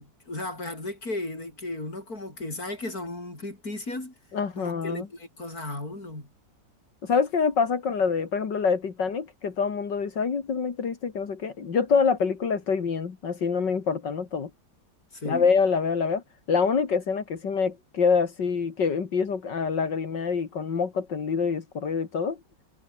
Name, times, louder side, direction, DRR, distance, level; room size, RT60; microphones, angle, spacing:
voice 1, 0.0-4.1 4.6-6.3 15.1-15.5, left 2 dB, 50° left, 7.5 m, -35 dB
voice 2, 4.3-5.1 7.0-14.5 15.2-16.2 16.5-22.4, left 5 dB, 70° left, 2.8 m, -26 dB
omnidirectional pair, 2.0 m